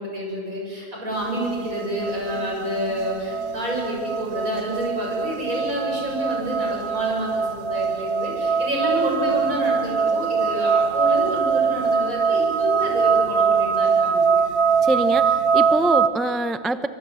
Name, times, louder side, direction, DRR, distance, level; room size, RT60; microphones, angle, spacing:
voice 1, 0.0-14.3, equal, 60° right, -2 dB, 7.5 m, -28 dB
sound 1, 1.1-16.1, right 6 dB, 80° right, 1.6 m, -22 dB
sound 2, 2.9-15.8, right 2 dB, 40° right, 7.9 m, -47 dB
voice 2, 14.8-16.9, right 1 dB, ahead, 11 dB, 0.3 m, -24 dB
24.5 x 24.0 x 8.0 m, 2.2 s
omnidirectional pair, 1.7 m